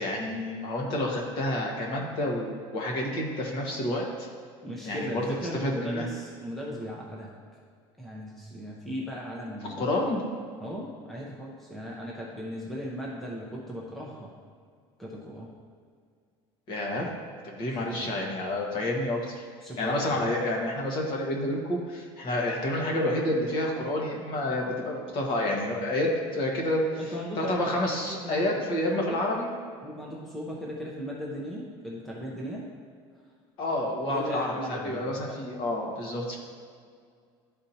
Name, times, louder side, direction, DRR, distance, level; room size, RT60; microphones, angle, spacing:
voice 1, 0.0-4.1 4.8-5.2 5.6-6.1 9.8-10.2 16.7-17.1 17.4-19.4 19.8-26.8 27.4-29.5 33.6-36.4, left 1 dB, 45° left, -1 dB, 1.3 m, -29 dB
voice 2, 4.6-7.3 8.0-9.9 10.6-14.3 15.0-15.5 17.6-18.2 19.6-20.2 27.0-29.2 29.8-32.7 34.0-35.4, equal, ahead, -4 dB, 0.6 m, -37 dB
12.0 x 4.3 x 2.7 m, 2.1 s
cardioid pair, 175°, 11 cm